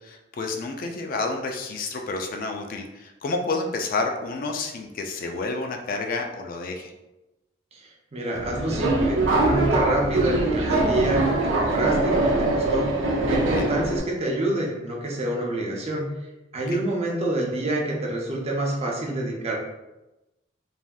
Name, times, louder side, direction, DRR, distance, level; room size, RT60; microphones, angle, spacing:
voice 1, 0.0-6.9 13.6-13.7 16.7-16.8, left 3 dB, 50° left, 3 dB, 0.3 m, -30 dB
voice 2, 7.7-16.1 16.5-19.6, right 1 dB, 35° right, -2 dB, 0.6 m, -27 dB
Subway metro underground, 8.4-14.0, right 2 dB, 80° right, 0.5 m, -22 dB
3.3 x 2.6 x 2.2 m, 0.98 s
head